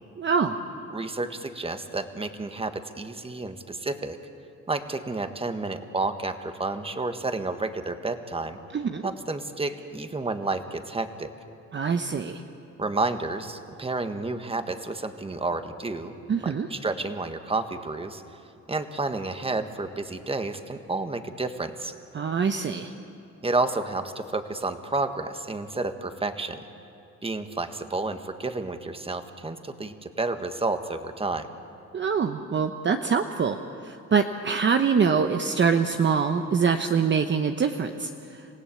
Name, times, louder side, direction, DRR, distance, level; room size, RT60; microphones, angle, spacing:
voice 1, 0.2-0.6 8.7-9.1 11.7-12.4 16.3-16.7 22.1-22.9 31.9-33.6 33.8-38.6, right 6 dB, 40° right, 6 dB, 1.0 m, -24 dB
voice 2, 0.9-4.2 4.7-8.6 9.0-11.3 12.8-16.1 16.4-18.2 18.7-21.9 23.4-26.6 27.2-31.5, right 3 dB, 20° right, 8 dB, 1.5 m, -30 dB
28.0 x 16.5 x 8.6 m, 2.6 s
cardioid pair, 90°, 30 cm